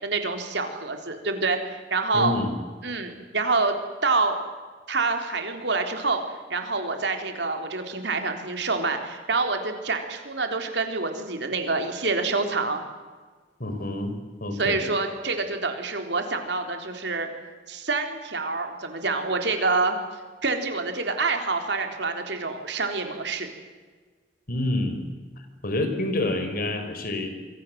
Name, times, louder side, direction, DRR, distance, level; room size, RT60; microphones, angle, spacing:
voice 1, 0.0-2.4 2.8-3.8 4.0-4.4 4.9-6.2 6.5-12.8 14.6-17.3 17.7-19.9 20.4-23.5, right 3 dB, 70° right, 5 dB, 3.9 m, -27 dB
voice 2, 2.1-2.5 13.6-14.1 14.4-14.8 24.5-25.0 25.6-27.4, left 2 dB, 55° left, 7 dB, 4.8 m, -27 dB
28.0 x 24.5 x 7.7 m, 1.4 s
head